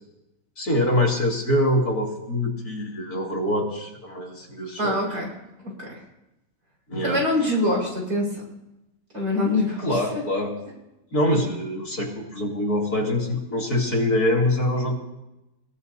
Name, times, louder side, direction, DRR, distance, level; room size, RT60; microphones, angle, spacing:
voice 1, 0.6-5.0 6.9-7.2 9.8-10.5 11.1-15.0, left 1 dB, 60° left, -2 dB, 3.5 m, -24 dB
voice 2, 4.8-5.3 5.6-6.0 7.0-8.3 9.1-10.0, left 1 dB, 60° right, -2 dB, 6.2 m, -24 dB
29.5 x 17.0 x 2.8 m, 0.94 s
omnidirectional pair, 1.9 m